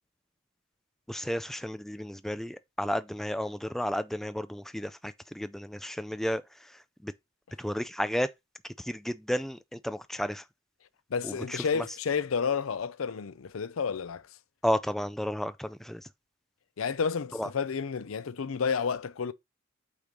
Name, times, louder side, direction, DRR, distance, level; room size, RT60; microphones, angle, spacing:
voice 1, 1.1-6.4 7.0-7.1 7.6-8.3 8.9-10.4 11.2-11.8 14.6-16.0 17.4-17.5, equal, ahead, 0.3 m, -32 dB
voice 2, 11.1-14.2 16.8-19.3, left 6 dB, 85° left, 0.5 m, -30 dB
8.4 x 3.0 x 5.1 m
head